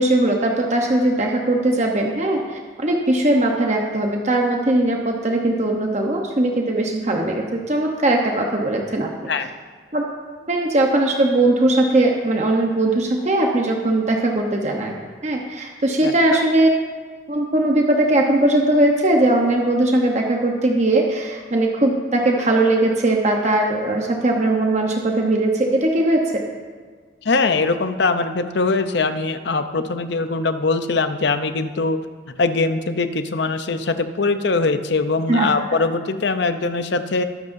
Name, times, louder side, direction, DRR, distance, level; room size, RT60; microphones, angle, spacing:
voice 1, 0.0-9.3 9.9-10.0 10.5-14.9 15.2-16.7 17.3-26.4 35.3-35.8, right 1 dB, 35° right, 1 dB, 0.9 m, -19 dB
voice 2, 16.0-16.4 27.2-32.0 32.4-37.2, left 3 dB, 60° left, 9 dB, 0.6 m, -22 dB
20.0 x 9.5 x 2.7 m, 1.5 s
head